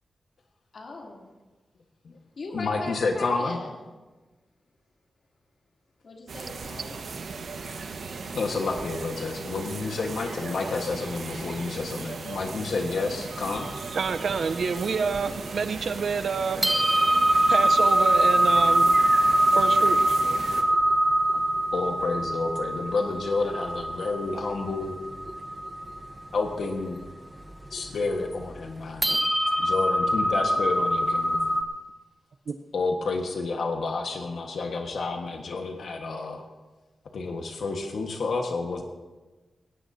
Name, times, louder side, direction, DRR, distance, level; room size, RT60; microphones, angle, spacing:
voice 1, 0.7-1.2 2.4-3.7 6.0-7.0, left 2 dB, 55° left, -2 dB, 3.1 m, -38 dB
voice 2, 2.5-3.6 8.3-13.7 21.7-25.0 26.3-27.0 27.7-29.1 29.6-31.4 32.7-36.4 37.1-38.8, left 3 dB, 75° left, 2 dB, 1.5 m, -29 dB
sound 1, 6.3-20.6, right 4 dB, 90° right, 1.4 m, -37 dB
sound 2, 13.3-15.7 16.2-16.3 16.6-31.6, right 1 dB, 5° right, 1.0 m, -24 dB
voice 3, 13.9-16.7 17.5-18.9 19.5-20.2 32.5-32.6, right 5 dB, 65° right, 11 dB, 0.8 m, -28 dB
20.0 x 18.0 x 2.8 m, 1.2 s
wide cardioid pair, 170°, 0 cm